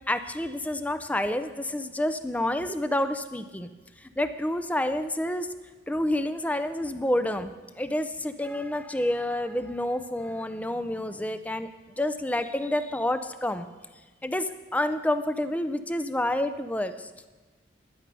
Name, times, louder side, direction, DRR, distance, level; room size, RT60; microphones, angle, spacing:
voice 1, 0.1-3.7 4.0-5.5 5.9-11.7 12.0-13.7 14.2-17.1, left 1 dB, 10° left, 10 dB, 0.5 m, -29 dB
11.5 x 11.0 x 5.4 m, 1.3 s
head